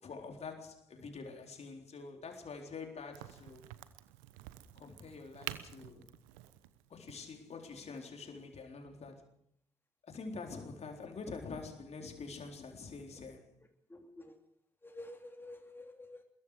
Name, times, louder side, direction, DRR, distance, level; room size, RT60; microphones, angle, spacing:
voice 1, 0.0-3.7 4.8-6.1 6.9-9.2 10.1-13.5, left 4 dB, 50° left, 4.0 m, -46 dB
Crack, 3.1-8.6, right 15 dB, 80° right, 1.0 m, -49 dB
voice 2, 13.6-14.4 14.8-16.2, left 1 dB, 15° left, 2.9 m, -50 dB
24.5 x 21.5 x 5.0 m
hypercardioid pair, 40°, 14 cm